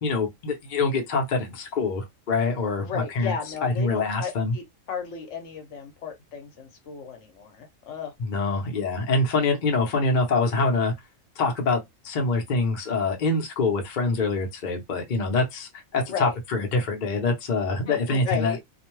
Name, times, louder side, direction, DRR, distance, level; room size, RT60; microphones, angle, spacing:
voice 1, 0.0-3.3 3.6-4.5 8.2-10.9 11.4-18.5, left 3 dB, 45° left, 0.7 m, -25 dB
voice 2, 2.8-8.1 16.1-16.4 17.9-18.6, left 7 dB, 65° left, 1.0 m, -34 dB
2.5 x 2.1 x 3.0 m
omnidirectional pair, 1.4 m